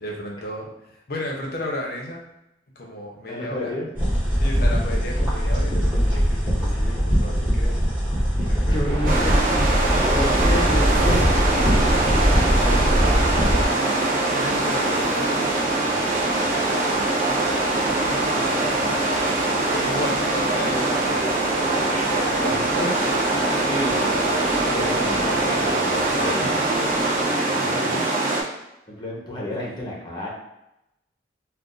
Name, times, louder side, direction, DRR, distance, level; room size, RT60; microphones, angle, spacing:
voice 1, 0.0-2.3 2.8-3.7 4.4-7.8 8.4-9.5 9.8-10.0 11.1-16.8 17.4-19.0 19.7-22.7 26.1-26.5 26.9-28.5 29.5-29.6, left 1 dB, 55° left, -1 dB, 0.7 m, -35 dB
voice 2, 3.3-3.9 8.7-11.4 17.9-19.3 19.8-20.4 20.6-20.8 21.7-21.8 22.4-23.0 23.6-26.5 27.3-28.0 28.9-30.3, left 1 dB, 25° left, -3 dB, 0.8 m, -31 dB
sound 1, 4.0-13.6, equal, 10° right, 1.1 m, -21 dB
sound 2, 8.9-27.2, right 1 dB, 75° right, 1.0 m, -31 dB
sound 3, 9.0-28.4, right 2 dB, 50° right, 0.6 m, -23 dB
2.5 x 2.4 x 3.8 m, 0.87 s
head